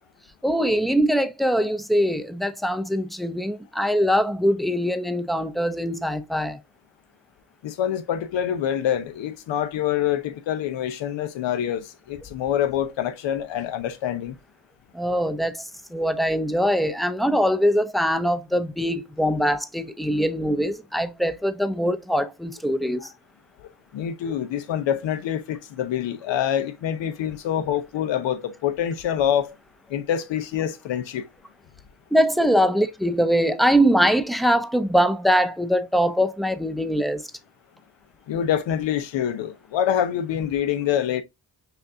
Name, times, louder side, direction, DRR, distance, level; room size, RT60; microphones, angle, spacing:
voice 1, 0.4-6.6 14.9-23.1 32.1-37.3, equal, ahead, 0.5 m, -22 dB
voice 2, 7.6-14.4 23.6-29.6 29.9-31.3 38.3-41.2, left 10 dB, 80° left, 0.8 m, -26 dB
5.9 x 2.6 x 2.7 m
cardioid pair, 65°, 44 cm